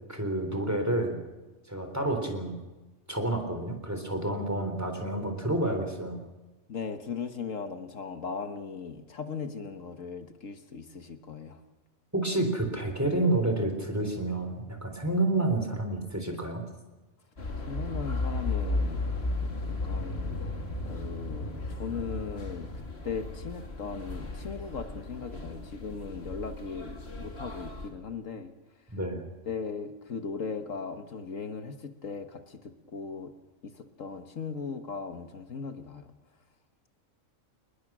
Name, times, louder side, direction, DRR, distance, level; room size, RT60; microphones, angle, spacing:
voice 1, 0.1-1.2 1.7-2.6 3.1-6.2 12.1-16.7 28.9-29.3, right 2 dB, 10° right, 5 dB, 3.8 m, -29 dB
voice 2, 6.7-11.6 17.6-19.1 19.6-28.5 28.9-29.0 29.5-33.3 33.6-36.1, left 5 dB, 70° left, 8 dB, 1.6 m, -38 dB
sound 1, 17.4-27.9, left 2 dB, 50° left, 2.6 m, -35 dB
28.0 x 20.0 x 6.2 m, 1.1 s
omnidirectional pair, 1.4 m